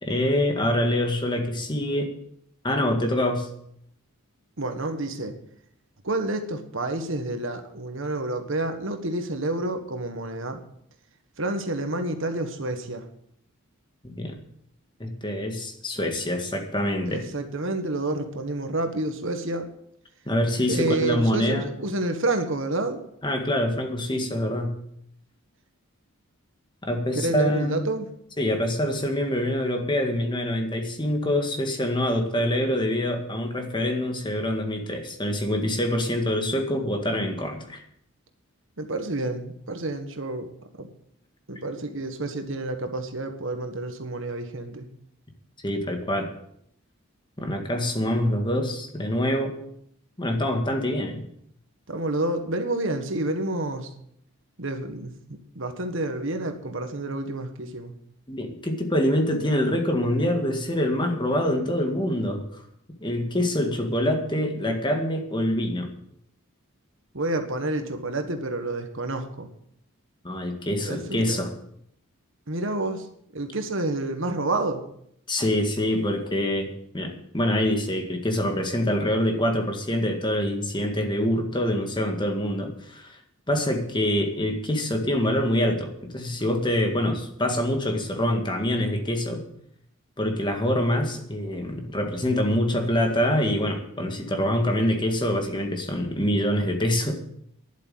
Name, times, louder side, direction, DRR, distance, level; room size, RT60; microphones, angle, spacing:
voice 1, 0.0-2.1 2.6-3.5 14.0-14.4 15.0-17.2 20.3-21.7 23.2-24.8 26.8-27.9 28.4-37.8 45.6-46.3 47.4-49.6 50.2-51.2 58.3-62.6 63.0-65.9 70.2-71.5 75.3-76.7 76.9-83.2 83.5-89.4 90.2-97.1, left 1 dB, 20° left, 4 dB, 1.9 m, -25 dB
voice 2, 4.6-5.3 6.0-10.6 11.4-13.1 17.1-19.7 20.7-23.0 27.1-28.1 38.8-40.5 40.8-40.9 41.5-44.9 51.9-53.9 54.6-57.9 67.1-69.5 70.8-71.4 72.5-73.1 73.3-74.8, right 2 dB, 60° right, 7 dB, 1.5 m, -29 dB
11.0 x 8.2 x 9.1 m, 0.71 s
head